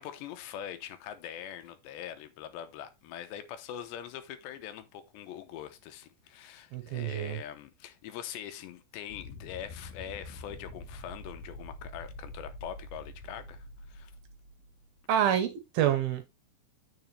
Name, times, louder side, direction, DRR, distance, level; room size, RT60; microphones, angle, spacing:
voice 1, 0.0-14.1, left 10 dB, 85° left, 3.2 m, -43 dB
voice 2, 6.7-7.4 15.1-16.3, right 10 dB, 70° right, 2.5 m, -27 dB
sound 1, 9.1-14.8, left 2 dB, 60° left, 3.7 m, -46 dB
9.2 x 6.7 x 3.3 m
omnidirectional pair, 5.0 m